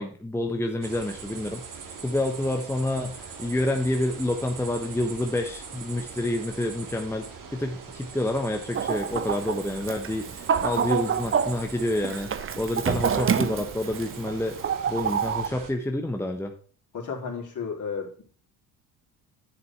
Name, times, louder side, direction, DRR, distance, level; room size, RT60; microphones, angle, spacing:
voice 1, 0.0-1.6 2.0-7.3 7.5-12.3 12.6-14.6 14.9-16.5, left 1 dB, 5° left, 4 dB, 1.2 m, -28 dB
sound 1, 0.8-15.7, right 5 dB, 45° right, 2.3 m, -41 dB
Chicken rooster, 8.7-15.5, right 7 dB, 30° right, 0.8 m, -28 dB
voice 2, 16.9-18.2, left 5 dB, 45° left, 1 dB, 3.8 m, -33 dB
10.0 x 6.8 x 4.5 m, 0.42 s
supercardioid pair, 70°, 43 cm